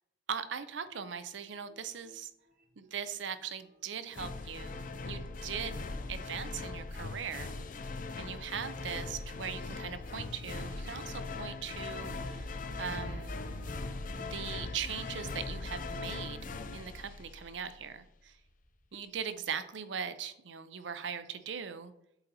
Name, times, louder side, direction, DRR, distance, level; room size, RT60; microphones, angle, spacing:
voice 1, 0.3-2.3 2.8-7.5 7.8-12.5 12.8-13.3 14.2-16.4 16.7-18.0 18.9-21.9, right 7 dB, 75° right, 11 dB, 0.6 m, -40 dB
sound 1, 0.9-2.2 2.5-17.5 18.3-18.9, equal, 50° right, 0.8 m, -51 dB
sound 2, 4.1-17.8, left 3 dB, 45° left, 0.5 m, -40 dB
8.0 x 4.0 x 4.1 m, 0.81 s
head